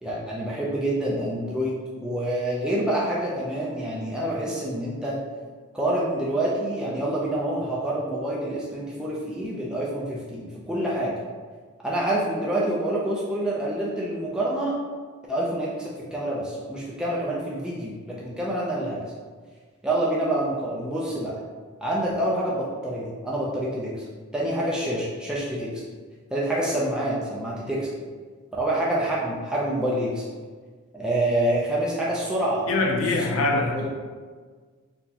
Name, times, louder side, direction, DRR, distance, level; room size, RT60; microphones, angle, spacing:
voice 1, 0.0-5.2 5.7-11.2 11.8-14.7 15.3-19.0 19.8-21.4 21.8-23.9 24.3-25.8 26.3-27.9 28.5-30.2 30.9-32.6 33.1-33.9, right 1 dB, 5° right, -6 dB, 0.4 m, -27 dB
voice 2, 32.7-33.9, left 2 dB, 70° left, 2 dB, 0.4 m, -23 dB
4.3 x 2.1 x 2.8 m, 1.5 s
head